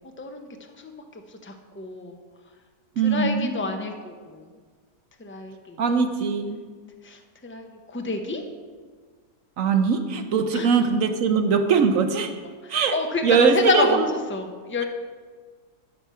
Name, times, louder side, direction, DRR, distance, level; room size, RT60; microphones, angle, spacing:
voice 1, 0.2-0.5 0.8-0.9 1.4-2.2 3.0-4.4 5.2-5.8 7.0-8.4 10.5-10.7 12.6-14.8, left 3 dB, 15° left, 5 dB, 0.3 m, -28 dB
voice 2, 3.0-3.5 5.8-6.6 9.6-12.3 12.7-13.0 13.2-13.9, right 5 dB, 60° right, 7 dB, 1.0 m, -21 dB
11.5 x 6.2 x 5.6 m, 1.5 s
omnidirectional pair, 1.7 m